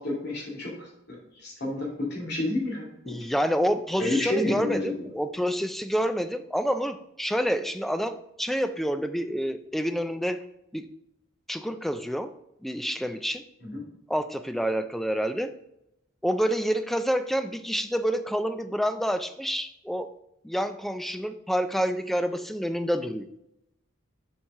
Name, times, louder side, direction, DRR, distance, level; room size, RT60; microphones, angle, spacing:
voice 1, 0.0-3.2 3.9-5.0 13.6-13.9, left 1 dB, 55° left, -3 dB, 2.4 m, -30 dB
voice 2, 3.1-10.4 10.7-10.9 11.5-12.3 12.6-13.4 14.1-15.5 16.2-20.1 20.4-23.3, equal, ahead, 10 dB, 0.3 m, -28 dB
7.1 x 4.6 x 3.7 m, 0.85 s
head